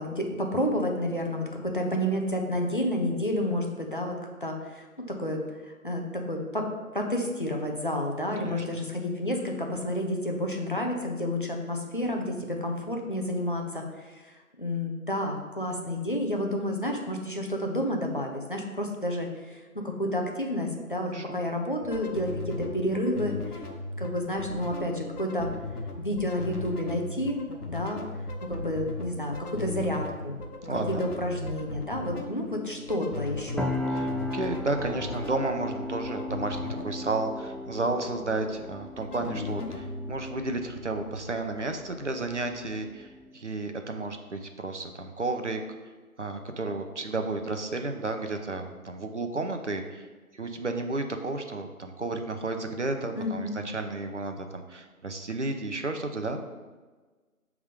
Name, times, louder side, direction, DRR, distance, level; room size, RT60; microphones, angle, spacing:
voice 1, 0.0-6.7 6.9-23.7 24.0-25.5 26.0-27.4 27.7-28.0 28.5-30.4 30.7-33.7 53.2-53.6, left 1 dB, 35° left, 1 dB, 0.7 m, -30 dB
sound 1, 21.8-41.3, left 3 dB, 85° left, 1.3 m, -38 dB
voice 2, 30.7-31.1 33.9-45.6 46.2-50.1 50.3-56.4, right 2 dB, 50° right, 5 dB, 0.7 m, -32 dB
sound 2, 33.6-43.3, left 1 dB, ahead, 0.3 m, -37 dB
7.1 x 3.6 x 5.0 m, 1.3 s
figure-of-eight pair, 170°, 44 cm